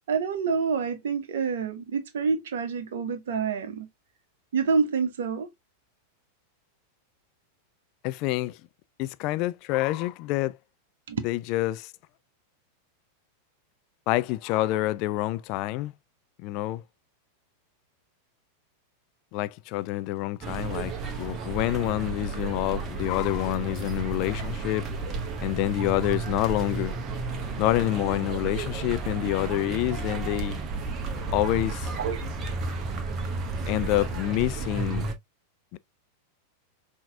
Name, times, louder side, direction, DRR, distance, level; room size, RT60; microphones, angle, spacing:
voice 1, 0.1-3.9 4.5-5.5 11.1-11.2 32.0-32.2, right 5 dB, 60° right, 0.8 m, -27 dB
voice 2, 8.0-8.6 9.0-10.6 11.2-11.9 14.1-15.9 16.4-16.8 19.3-24.9 25.4-26.9 27.6-30.6 31.3-31.9 33.7-35.1 35.7-35.8, left 17 dB, 40° left, 0.3 m, -27 dB
sound 1, 20.4-35.1, right 4 dB, 30° right, 0.9 m, -32 dB
5.7 x 2.8 x 2.3 m
figure-of-eight pair, 90°, 0 cm